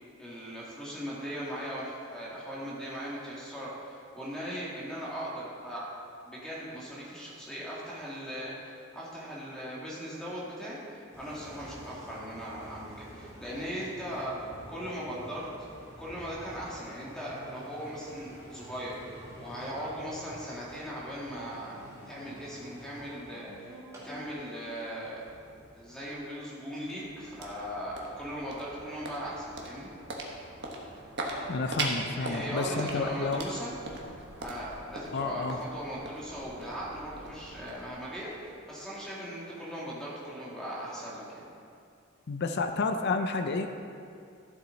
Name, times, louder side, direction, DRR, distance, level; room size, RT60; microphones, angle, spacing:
voice 1, 0.2-5.9 6.2-15.5 16.0-19.0 19.4-21.8 22.1-23.8 24.0-25.2 25.7-29.9 32.1-33.7 34.4-41.5, equal, 5° left, -7 dB, 2.2 m, -39 dB
Engine, 11.1-26.1, equal, 15° right, 1.8 m, -49 dB
sound 1, 26.4-38.8, right 2 dB, 55° right, 1.3 m, -40 dB
voice 2, 31.5-33.4 35.1-35.6 42.3-43.7, left 3 dB, 55° left, 7 dB, 0.5 m, -30 dB
12.5 x 7.6 x 4.0 m, 2.4 s
head